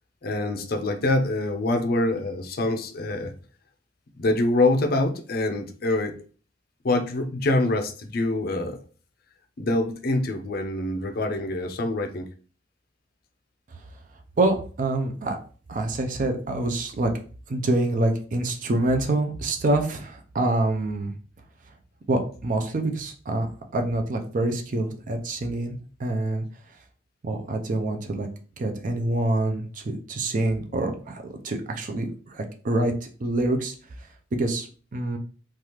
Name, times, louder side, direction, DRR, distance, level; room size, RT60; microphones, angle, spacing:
voice 1, 0.2-3.3 4.2-6.2 6.8-8.8 9.6-12.3, left 2 dB, 50° left, 5 dB, 0.5 m, -25 dB
voice 2, 14.4-15.4 15.7-17.1 17.5-21.1 22.1-23.5 23.7-26.4 27.2-28.3 28.6-32.9 33.2-33.7 34.3-34.7 34.9-35.2, right 2 dB, 40° right, 4 dB, 0.4 m, -26 dB
3.3 x 2.3 x 2.9 m, 0.40 s
head